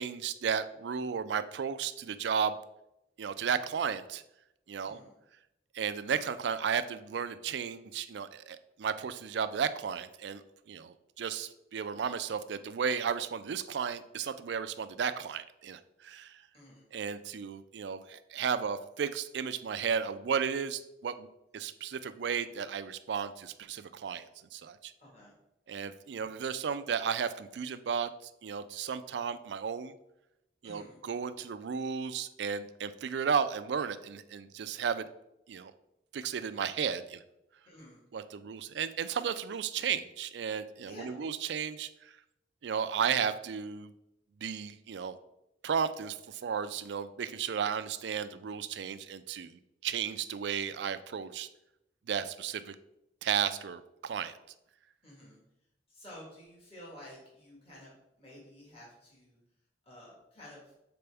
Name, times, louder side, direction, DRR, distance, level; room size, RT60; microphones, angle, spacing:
voice 1, 0.0-2.5 3.2-4.2 4.7-5.0 5.7-10.4 10.7-16.3 16.9-21.3 21.5-24.9 25.7-28.1 28.4-29.9 30.6-35.0 35.5-35.7 36.1-37.2 38.1-41.9 42.6-43.9 44.4-45.2 45.6-49.5 49.8-51.5 52.1-52.7 53.2-54.3, right 7 dB, 70° right, 12 dB, 0.4 m, -34 dB
voice 2, 16.5-16.9 25.0-25.3 26.2-26.4 30.6-31.0 37.6-38.0 40.8-41.2 55.0-55.4 55.9-59.4 59.8-60.7, left 1 dB, 35° left, -5 dB, 1.7 m, -51 dB
6.8 x 4.2 x 3.4 m, 0.86 s
head